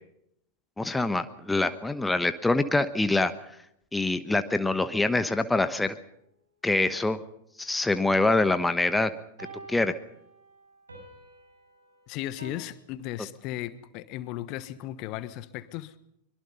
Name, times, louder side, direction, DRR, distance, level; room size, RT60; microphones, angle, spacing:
voice 1, 0.8-3.3 3.9-6.0 6.6-7.2 7.6-9.1 9.7-9.9, left 2 dB, 5° left, 1.1 m, -25 dB
sound 1, 9.4-12.5, right 3 dB, 75° right, 6.9 m, -48 dB
voice 2, 12.1-16.0, left 14 dB, 40° left, 1.3 m, -36 dB
23.5 x 23.0 x 5.5 m
figure-of-eight pair, 90°, 0 cm